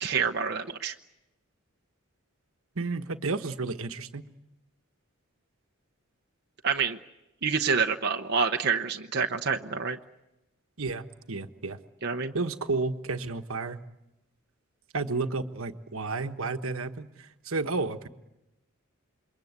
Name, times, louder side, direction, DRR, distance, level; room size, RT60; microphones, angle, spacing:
voice 1, 0.0-0.9 6.6-7.0 7.4-10.0 12.0-12.3, right 5 dB, 50° right, 3 dB, 0.9 m, -27 dB
voice 2, 2.7-4.2 10.8-11.8 12.3-13.8 14.9-18.1, right 3 dB, 70° right, 7 dB, 1.3 m, -32 dB
27.5 x 22.5 x 8.2 m, 0.95 s
head